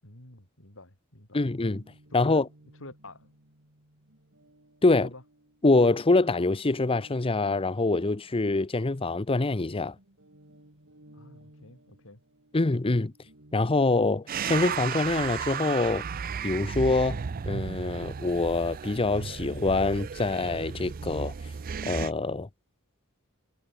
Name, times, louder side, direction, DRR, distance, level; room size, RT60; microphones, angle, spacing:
voice 1, 0.0-1.5 2.3-2.4 2.8-3.3 5.0-5.2 11.1-12.2, left 2 dB, 65° left, 6.7 m, -48 dB
voice 2, 1.3-1.8 2.1-2.5 4.8-5.1 5.6-9.9 12.5-13.1 13.5-16.0 16.4-21.3 21.9-22.5, left 3 dB, 25° left, 0.7 m, -25 dB
Guitar, 1.7-9.4 9.7-20.1, right 1 dB, 60° right, 3.8 m, -55 dB
sound 1, 14.3-22.1, right 6 dB, 40° right, 0.4 m, -34 dB
head